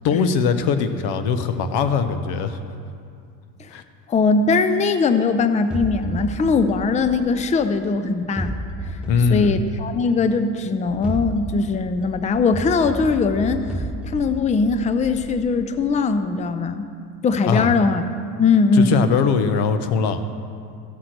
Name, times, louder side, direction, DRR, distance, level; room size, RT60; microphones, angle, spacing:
voice 1, 0.0-2.6 3.7-3.8 9.1-9.6 17.5-17.7 18.7-20.2, left 6 dB, 55° left, 9 dB, 1.1 m, -21 dB
voice 2, 4.1-8.5 8.9-9.0 9.3-13.7 14.1-16.8 17.2-18.1 18.4-19.1, left 4 dB, 15° left, 10 dB, 0.5 m, -20 dB
sound 1, 5.7-7.8 8.4-10.2 10.9-15.9, equal, ahead, 0.9 m, -32 dB
15.0 x 5.8 x 6.5 m, 2.4 s
hypercardioid pair, 85°, 50 cm